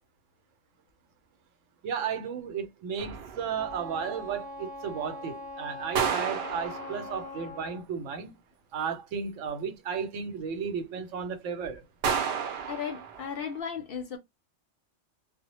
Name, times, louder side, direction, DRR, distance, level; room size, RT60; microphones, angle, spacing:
voice 1, 1.8-8.4 8.7-11.8, right 6 dB, 85° right, 1.0 m, -34 dB
sound 1, 3.0-3.9 6.0-7.5 12.0-13.6, right 6 dB, 65° right, 0.7 m, -32 dB
Wind instrument woodwind instrument, 3.5-7.9, left 2 dB, 10° left, 0.6 m, -41 dB
voice 2, 12.7-14.2, left 7 dB, 60° left, 0.7 m, -35 dB
2.1 x 2.0 x 2.9 m
omnidirectional pair, 1.3 m